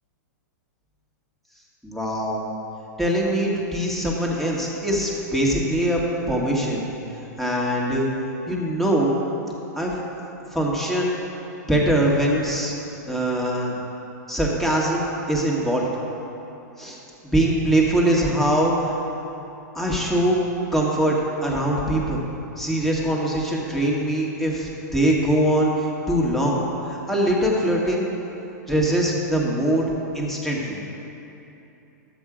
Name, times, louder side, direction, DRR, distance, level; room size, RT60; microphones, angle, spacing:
voice 1, 1.8-2.4 3.0-6.0 6.3-6.9 7.4-8.1 8.5-9.2 9.8-9.9 10.5-11.2 11.7-12.7 13.1-13.8 14.3-15.8 16.8-17.0 17.2-18.7 19.7-20.4 20.7-22.2 22.6-28.1 28.7-29.9 30.1-30.8, right 1 dB, ahead, -4 dB, 1.8 m, -22 dB
12.0 x 8.2 x 5.0 m, 2.9 s
hypercardioid pair, 130°, 10 cm